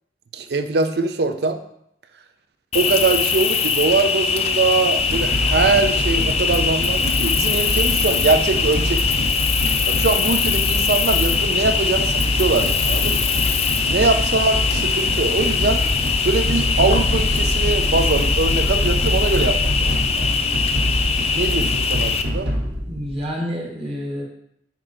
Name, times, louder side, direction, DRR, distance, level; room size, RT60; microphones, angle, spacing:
voice 1, 0.3-1.6 2.7-9.3 9.9-13.3 13.8-15.8 16.2-20.3 21.3-22.5, right 3 dB, 60° right, 9 dB, 0.5 m, -22 dB
Cricket, 2.7-22.2, left 5 dB, 35° left, 0.4 m, -22 dB
sound 1, 5.0-23.3, equal, 75° right, 1.3 m, -25 dB
voice 2, 22.9-24.2, equal, 30° right, -2 dB, 1.3 m, -28 dB
6.0 x 4.7 x 3.8 m, 0.74 s
head